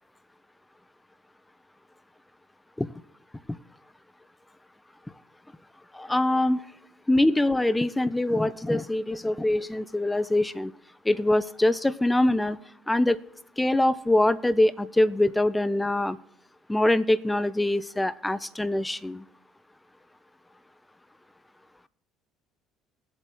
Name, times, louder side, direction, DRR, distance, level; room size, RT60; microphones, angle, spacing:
voice 1, 5.9-6.6 7.1-10.7 11.0-12.6 12.9-13.2 13.6-16.2 16.7-19.2, left 1 dB, 10° left, 17 dB, 0.6 m, -24 dB
20.5 x 8.0 x 3.0 m, 0.75 s
cardioid pair, 100°, 0 cm